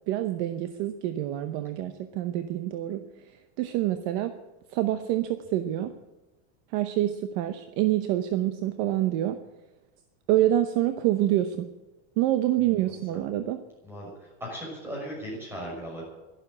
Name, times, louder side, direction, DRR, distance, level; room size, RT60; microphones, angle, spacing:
voice 1, 0.1-4.3 4.7-5.9 6.7-9.4 10.3-11.7 12.2-13.6, right 13 dB, 40° right, 9 dB, 0.8 m, -27 dB
voice 2, 13.8-16.0, equal, 5° right, -2 dB, 6.0 m, -37 dB
12.0 x 12.0 x 8.6 m, 1.1 s
supercardioid pair, 175°, 35 cm